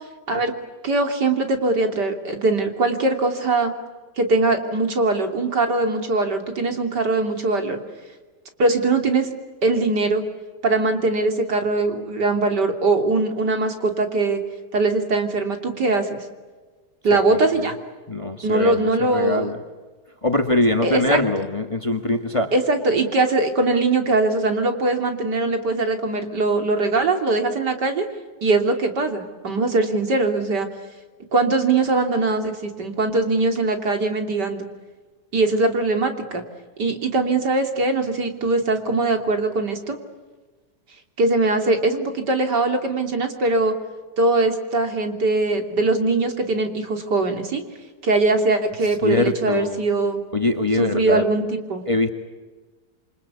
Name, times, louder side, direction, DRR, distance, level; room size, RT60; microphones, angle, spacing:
voice 1, 0.8-3.7 4.2-7.8 8.6-9.3 9.6-10.2 10.6-14.4 14.7-16.2 17.0-17.7 18.4-19.5 20.8-21.2 22.5-28.1 28.4-30.7 31.3-34.7 35.3-36.4 36.8-40.0 41.2-43.7 44.2-47.6 48.0-50.2 50.8-51.4 51.7-51.8, right 3 dB, 90° right, 5 dB, 3.7 m, -21 dB
voice 2, 17.1-17.7 18.1-19.6 20.2-22.5 49.0-49.8 50.3-51.3 51.9-52.1, left 2 dB, 20° left, 6 dB, 1.8 m, -23 dB
28.5 x 25.0 x 8.4 m, 1.3 s
omnidirectional pair, 1.8 m